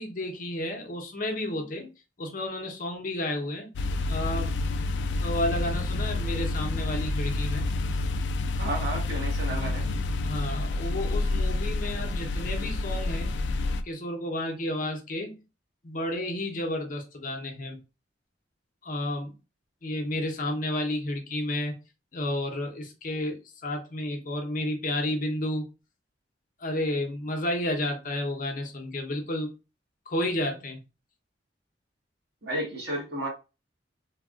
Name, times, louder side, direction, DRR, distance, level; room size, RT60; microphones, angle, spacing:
voice 1, 0.0-1.9 2.2-3.7 4.1-4.6 5.2-7.6 10.2-13.4 13.8-15.4 15.8-17.8 18.8-19.3 19.8-21.7 22.1-25.6 26.6-29.5 30.1-30.8, left 1 dB, 50° left, 0.7 m, -31 dB
sound 1, 3.8-13.8, left 2 dB, 70° left, 0.3 m, -28 dB
voice 2, 8.6-9.9 32.4-33.3, right 1 dB, 70° right, 1.2 m, -32 dB
3.4 x 2.3 x 2.3 m
head